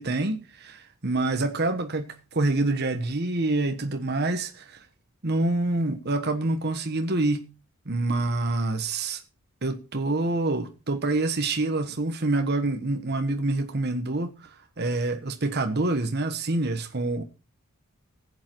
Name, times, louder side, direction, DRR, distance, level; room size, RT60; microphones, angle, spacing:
voice 1, 0.0-4.5 5.2-7.5 7.9-9.2 9.6-14.5 14.8-17.2, right 2 dB, 50° right, 1.2 m, -26 dB
15.0 x 8.5 x 4.6 m
head